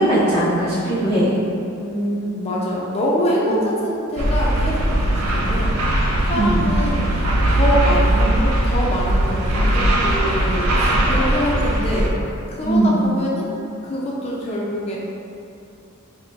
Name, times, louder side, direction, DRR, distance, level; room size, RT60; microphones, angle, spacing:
voice 1, 0.0-1.4 3.5-3.6 6.3-6.7 12.6-13.1, right 1 dB, 50° right, -12 dB, 1.3 m, -19 dB
voice 2, 1.8-5.8 6.3-7.1 7.5-12.1 12.5-13.5 13.8-15.0, equal, 30° left, -4 dB, 0.3 m, -24 dB
sound 1, 4.2-12.1, right 1 dB, 80° right, 0.4 m, -19 dB
4.1 x 2.0 x 2.8 m, 2.6 s
head